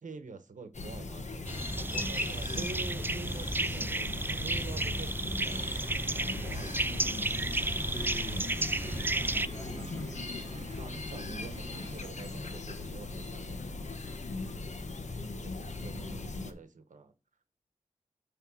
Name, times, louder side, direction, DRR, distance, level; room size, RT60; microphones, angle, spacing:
voice 1, 0.0-5.7 6.3-7.0 10.8-14.0 15.4-17.1, right 4 dB, 85° right, 1.0 m, -46 dB
sound 1, 0.7-16.5, left 3 dB, 65° left, 1.1 m, -39 dB
sound 2, 1.5-9.5, right 2 dB, 15° right, 0.4 m, -33 dB
sound 3, 5.4-12.1, right 4 dB, 60° right, 1.0 m, -49 dB
voice 2, 7.9-8.4 9.1-10.2, equal, 10° left, 2.4 m, -44 dB
9.3 x 3.3 x 6.2 m
wide cardioid pair, 65°, 13 cm